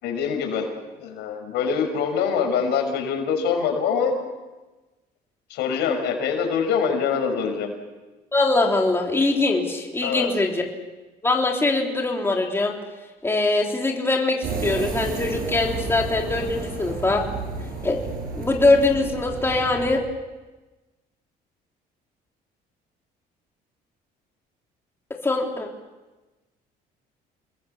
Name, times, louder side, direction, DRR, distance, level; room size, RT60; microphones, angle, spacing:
voice 1, 0.0-0.7 1.0-4.2 5.5-7.7 10.0-10.3, left 6 dB, 85° left, 3 dB, 6.2 m, -24 dB
voice 2, 8.3-10.7 11.2-12.7 13.2-17.2 17.8-18.0 18.3-20.0 25.2-25.7, left 2 dB, 15° left, 0 dB, 3.5 m, -22 dB
sound 1, 14.4-20.0, right 4 dB, 60° right, 6.6 m, -32 dB
29.0 x 21.0 x 7.2 m, 1.2 s
cardioid pair, 110°, 17 cm